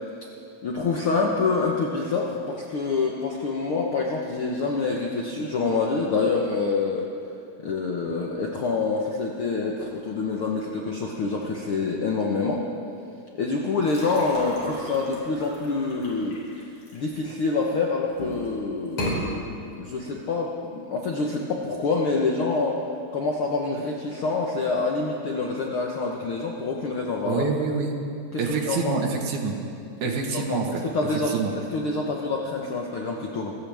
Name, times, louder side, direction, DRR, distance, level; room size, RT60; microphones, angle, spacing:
voice 1, 0.6-7.1 7.6-12.6 13.4-16.4 16.9-22.8 23.1-27.4 28.3-29.0 30.3-33.5, left 3 dB, 65° left, -1 dB, 1.3 m, -26 dB
sound 1, 13.8-17.6 18.1-18.5 18.9-19.2, equal, 50° left, 4.5 m, -34 dB
voice 2, 27.3-28.0 28.4-29.5 30.0-30.7 31.3-31.5, right 5 dB, 65° right, 2 dB, 2.6 m, -26 dB
27.0 x 15.0 x 3.5 m, 2.6 s
omnidirectional pair, 4.0 m